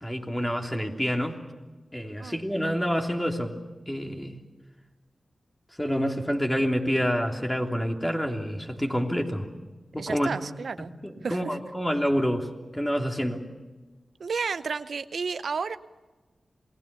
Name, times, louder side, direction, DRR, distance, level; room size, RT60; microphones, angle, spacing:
voice 1, 0.0-1.4 1.9-3.5 3.9-4.4 5.8-9.5 9.9-10.3 11.0-12.5 12.7-13.4, equal, 10° left, 2 dB, 3.3 m, -27 dB
voice 2, 10.0-10.9 11.2-11.4 14.2-15.8, right 5 dB, 80° right, 12 dB, 0.7 m, -32 dB
27.5 x 20.0 x 6.9 m, 1.2 s
cardioid pair, 50°, 0 cm